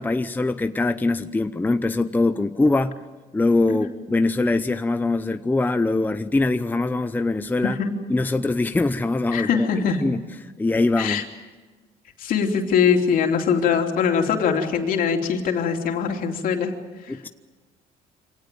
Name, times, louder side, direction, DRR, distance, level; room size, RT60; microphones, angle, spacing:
voice 1, 0.0-3.0 3.3-7.8 8.1-9.7 10.0-11.2 17.1-17.3, left 2 dB, 10° left, 10 dB, 0.7 m, -23 dB
voice 2, 7.6-8.0 9.3-10.1 11.0-11.2 12.2-16.7 17.0-17.3, left 6 dB, 65° left, 3 dB, 3.1 m, -22 dB
25.0 x 18.0 x 9.3 m, 1.4 s
cardioid pair, 95°, 16 cm